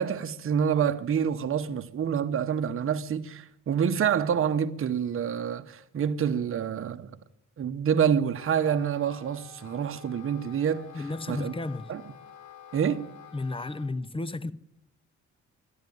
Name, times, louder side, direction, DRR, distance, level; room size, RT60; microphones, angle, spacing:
voice 1, 0.0-7.1 7.6-10.9 11.3-11.5 11.9-12.0 12.7-13.1, right 8 dB, 45° right, 0.9 m, -27 dB
Wind instrument woodwind instrument, 8.3-13.9, left 9 dB, 70° left, 1.6 m, -49 dB
voice 2, 10.9-11.9 13.3-14.5, left 2 dB, 20° left, 0.6 m, -33 dB
13.0 x 11.0 x 9.2 m
cardioid pair, 90°, 30 cm